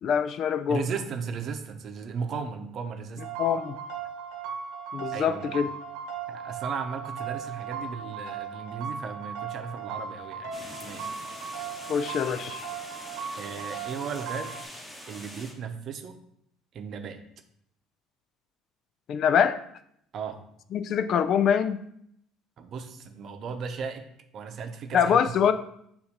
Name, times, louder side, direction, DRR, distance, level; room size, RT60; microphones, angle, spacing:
voice 1, 0.0-0.8 3.4-3.7 4.9-5.7 11.9-12.7 19.1-19.6 20.7-21.8 24.9-25.5, left 8 dB, 55° left, 11 dB, 0.4 m, -24 dB
voice 2, 0.7-3.3 5.1-5.4 6.3-11.2 13.4-14.6 15.1-16.2 16.7-17.2 20.1-20.4 22.6-24.0 24.3-25.2, right 6 dB, 50° right, 6 dB, 0.7 m, -36 dB
sound 1, 3.2-14.6, right 6 dB, 85° right, 0.9 m, -37 dB
sound 2, 10.5-15.5, equal, 5° left, 1.2 m, -44 dB
6.9 x 2.6 x 5.2 m, 0.72 s
supercardioid pair, 90°, 0 cm